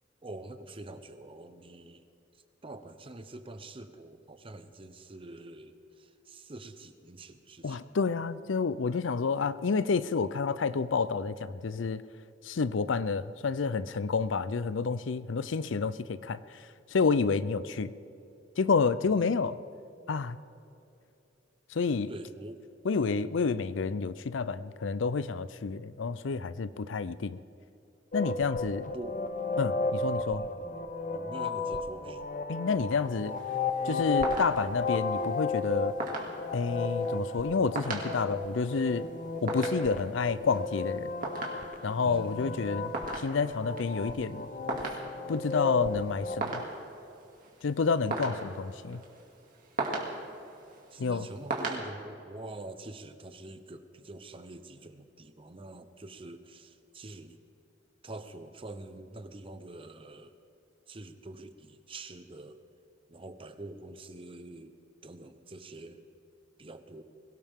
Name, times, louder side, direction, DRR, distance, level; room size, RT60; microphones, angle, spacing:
voice 1, 0.2-2.0 2.6-7.9 19.0-19.6 22.1-22.6 28.9-29.2 30.3-30.8 31.1-32.3 42.0-42.7 50.9-57.4 58.0-60.3 60.9-62.6 63.1-64.7 65.0-66.0 66.6-67.0, right 2 dB, 30° right, 9 dB, 0.8 m, -46 dB
voice 2, 7.6-12.0 12.4-16.6 16.9-17.9 18.6-19.6 20.1-20.4 21.7-22.1 22.8-27.4 28.1-28.9 29.6-30.4 32.5-33.3 33.8-35.9 36.5-39.1 39.4-41.1 41.8-44.5 45.3-46.6 47.6-49.0 51.0-51.3, left 5 dB, 80° left, 15 dB, 0.5 m, -29 dB
sound 1, 28.1-46.4, left 3 dB, 40° left, 0.8 m, -34 dB
sound 2, 33.0-51.8, right 3 dB, 45° right, 2.5 m, -40 dB
22.0 x 17.0 x 3.6 m, 2.7 s
head